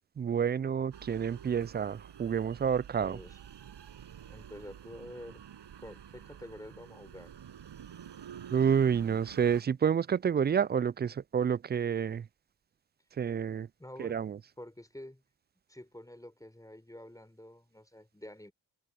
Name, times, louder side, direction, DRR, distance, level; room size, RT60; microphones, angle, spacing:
voice 1, 0.2-3.2 8.5-12.3 13.2-13.7 14.0-14.4, right 7 dB, 25° right, 0.3 m, -29 dB
sound 1, 0.9-9.6, right 9 dB, 80° right, 7.3 m, -49 dB
voice 2, 3.0-3.4 4.3-5.4 5.8-7.3 13.8-14.2 14.6-15.2 15.7-18.5, left 1 dB, 10° left, 4.3 m, -48 dB
open air
supercardioid pair, 50°, 42 cm